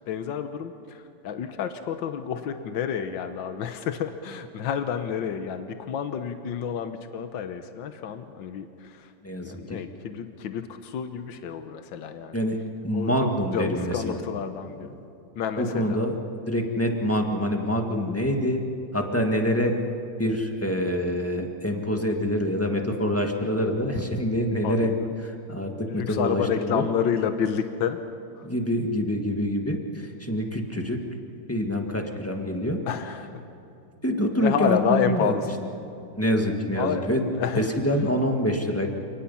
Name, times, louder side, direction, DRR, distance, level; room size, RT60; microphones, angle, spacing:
voice 1, 0.0-9.1 9.4-12.4 12.9-14.9 15.4-16.0 24.6-25.1 25.9-28.0 28.4-28.5 32.9-33.3 34.4-35.5 36.8-37.7, left 7 dB, 85° left, 8 dB, 1.7 m, -30 dB
voice 2, 9.2-9.8 12.3-12.6 12.8-14.1 14.8-14.9 15.6-16.2 16.5-18.6 18.9-19.8 20.2-24.9 25.2-26.9 28.4-31.0 31.5-32.8 34.0-35.4 36.2-37.2 37.6-38.9, equal, 10° left, 2 dB, 1.8 m, -26 dB
29.5 x 19.0 x 5.7 m, 2.7 s
omnidirectional pair, 2.1 m